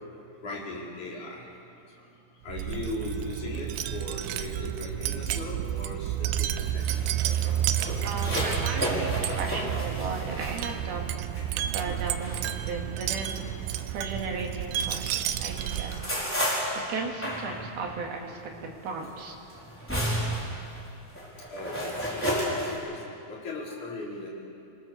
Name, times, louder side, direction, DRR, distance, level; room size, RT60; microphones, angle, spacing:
voice 1, 0.4-1.5 2.4-7.0 19.5-19.6 21.5-24.3, left 2 dB, 45° left, -4 dB, 5.5 m, -38 dB
Wind chime, 2.5-16.2, right 11 dB, 80° right, 2.8 m, -31 dB
sound 1, 6.2-14.7 15.1-22.7, equal, 5° left, 3.9 m, -33 dB
voice 2, 8.0-11.1 11.7-16.0 16.8-19.4, right 4 dB, 65° right, 1 dB, 4.0 m, -36 dB
27.0 x 19.5 x 7.0 m, 2.5 s
omnidirectional pair, 4.9 m